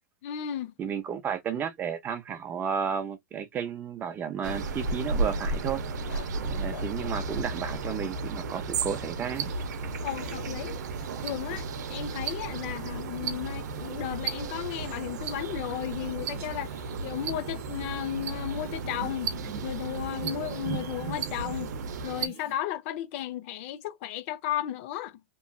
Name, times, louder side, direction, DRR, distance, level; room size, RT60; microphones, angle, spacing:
voice 1, 0.2-0.7 10.0-10.7 11.2-19.3 19.6-21.7 22.0-25.2, left 12 dB, 50° left, 0.6 m, -34 dB
voice 2, 0.8-5.8 6.4-9.5, right 7 dB, 20° right, 0.6 m, -33 dB
sound 1, 4.4-22.3, right 3 dB, 85° right, 0.7 m, -34 dB
sound 2, 6.1-6.4 6.7-8.3 8.9-10.9, left 9 dB, 75° left, 1.2 m, -50 dB
sound 3, 9.3-22.5, right 9 dB, 55° right, 0.8 m, -40 dB
3.0 x 2.5 x 2.3 m
supercardioid pair, 150°, 9 cm